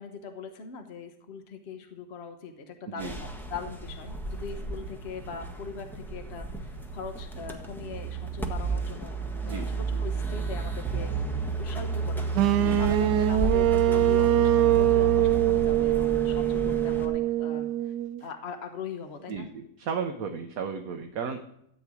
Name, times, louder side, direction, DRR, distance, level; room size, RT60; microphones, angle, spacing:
voice 1, 0.0-9.2 9.4-11.2 11.6-17.9 18.2-19.5, left 5 dB, 45° left, 6 dB, 1.2 m, -41 dB
sound 1, 3.0-17.1, right 3 dB, ahead, 0.9 m, -32 dB
sound 2, 12.3-18.2, right 15 dB, 90° right, 1.2 m, -23 dB
voice 2, 19.3-21.5, right 6 dB, 65° right, 6 dB, 1.2 m, -34 dB
13.5 x 4.6 x 8.3 m, 0.76 s
omnidirectional pair, 1.7 m